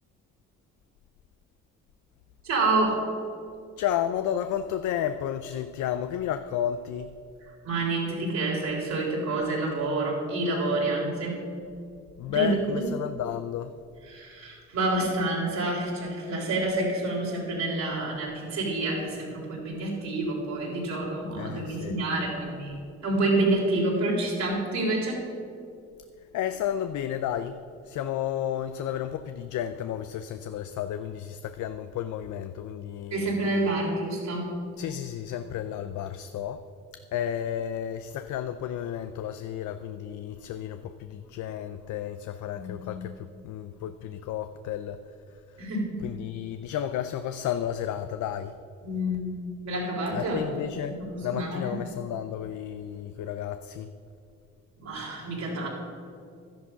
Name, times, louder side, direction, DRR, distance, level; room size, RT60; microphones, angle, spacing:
voice 1, 2.4-3.1 7.6-11.5 12.3-12.9 14.0-25.3 33.1-34.6 42.5-43.1 45.6-46.0 48.8-51.7 54.8-55.7, right 2 dB, 65° right, -3 dB, 3.8 m, -28 dB
voice 2, 3.8-7.1 12.2-13.7 21.4-21.9 26.3-33.3 34.8-36.7 36.9-45.0 45.5-45.7 46.0-48.6 50.1-53.9, left 10 dB, 75° left, 10 dB, 0.6 m, -32 dB
12.0 x 10.5 x 5.6 m, 2.4 s
cardioid pair, 90°, 30 cm